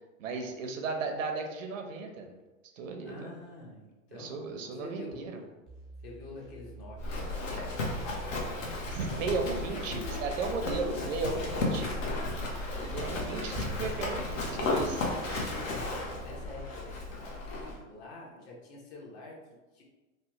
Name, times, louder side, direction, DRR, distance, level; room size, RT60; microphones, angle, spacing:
voice 1, 0.2-2.3 2.8-3.3 4.1-5.3 8.9-11.9 12.9-15.5, right 3 dB, 70° right, 4 dB, 0.7 m, -35 dB
voice 2, 3.0-4.3 4.6-5.2 6.0-8.6 9.3-9.4 9.7-10.3 10.6-11.3 11.6-12.4 12.8-13.1 13.4-13.6 15.7-19.8, left 2 dB, 45° left, -2 dB, 0.9 m, -47 dB
sound 1, 5.7-17.2, right 2 dB, ahead, 0.4 m, -49 dB
Livestock farm animals working animals, 7.0-17.8, left 2 dB, 70° left, 1.0 m, -34 dB
3.2 x 2.1 x 2.9 m, 1.1 s
hypercardioid pair, 115°, 40 cm